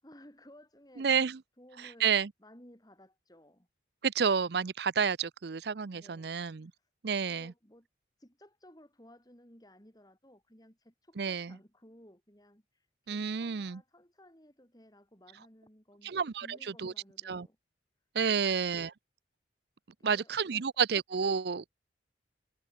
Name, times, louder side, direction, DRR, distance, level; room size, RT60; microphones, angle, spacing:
voice 1, 0.0-1.1 1.6-3.7 5.9-6.9 7.2-7.9 8.2-17.6 20.0-20.7, left 1 dB, 20° left, 5.1 m, -58 dB
voice 2, 1.0-1.4 2.0-2.3 4.0-6.7 7.0-7.5 11.2-11.5 13.1-13.8 16.0-16.9 17.3-17.5 18.1-18.9 20.0-21.7, right 6 dB, 60° right, 0.5 m, -30 dB
head